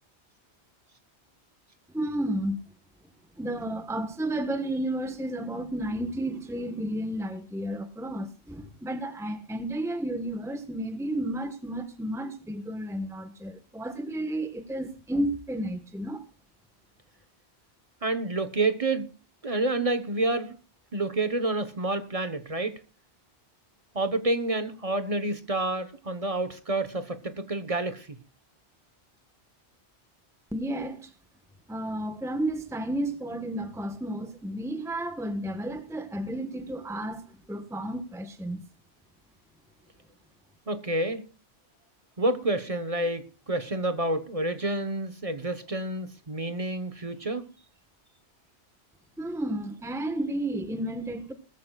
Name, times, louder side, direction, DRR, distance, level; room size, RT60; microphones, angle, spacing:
voice 1, 1.9-2.6 3.4-16.2 30.5-31.1 31.7-38.6 49.2-51.3, right 1 dB, 5° right, 1.2 m, -32 dB
voice 2, 18.0-19.1 19.4-20.6 20.9-22.8 23.9-28.2 40.7-41.3 42.2-47.5, right 2 dB, 35° right, 1.1 m, -29 dB
19.5 x 14.0 x 2.3 m
omnidirectional pair, 1.1 m